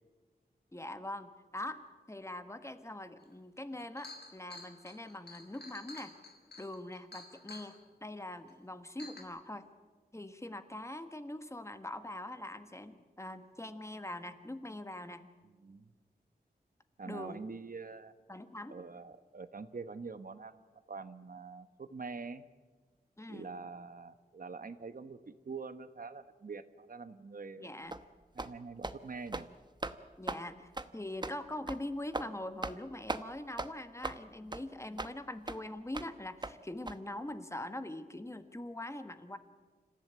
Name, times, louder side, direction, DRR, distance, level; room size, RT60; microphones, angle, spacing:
voice 1, 0.7-1.8 2.1-6.1 6.6-9.7 10.1-15.3 17.0-17.4 18.3-18.8 23.2-23.5 27.6-28.0 30.2-39.4, left 1 dB, 15° left, 9 dB, 1.5 m, -43 dB
Chink clink, 3.3-3.4 3.7-7.7 8.5-8.6 9.0-9.2, left 2 dB, 85° left, 3.4 m, -50 dB
voice 2, 15.4-15.9 17.0-18.1 18.7-22.4 23.3-27.8 28.3-29.5, right 4 dB, 60° right, 11 dB, 1.2 m, -45 dB
sound 1, 27.9-28.0 28.4-28.5 28.8-29.0 29.3-29.5 29.8-30.0 30.3-30.4 30.8-30.9 31.2-31.4 31.7-31.8 32.1-32.3 32.6-32.8 33.1-33.2 33.6-33.7 34.0-34.2 34.5-34.6 35.0-35.1 35.5-35.6 35.9-36.1 36.4-36.5 36.9-37.0, right 2 dB, 25° right, 1.0 m, -38 dB
27.0 x 14.5 x 9.2 m, 1.3 s
wide cardioid pair, 95°, 16 cm